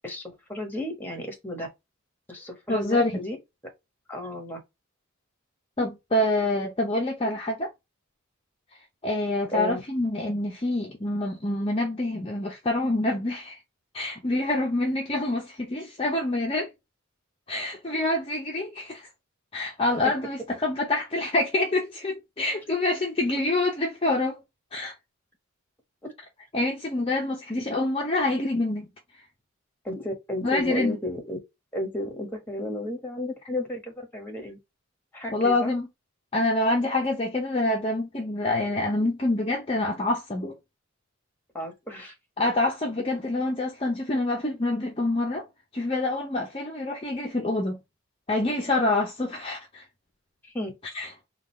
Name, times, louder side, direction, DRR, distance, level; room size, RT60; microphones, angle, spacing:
voice 1, 0.0-1.7 2.3-3.4 4.1-4.6 9.4-9.8 29.8-31.4 31.7-34.6 35.1-35.7 41.5-42.1 50.4-50.7, left 1 dB, 10° left, 1.1 m, -33 dB
voice 2, 2.7-3.1 5.8-7.7 9.0-13.6 13.9-16.7 17.5-19.1 19.5-24.4 24.7-24.9 26.5-28.9 30.4-31.0 35.3-35.9 36.3-40.5 42.4-45.5 45.7-47.8 48.3-49.8 50.9-51.1, left 2 dB, 25° left, 0.6 m, -26 dB
3.7 x 2.4 x 4.2 m
head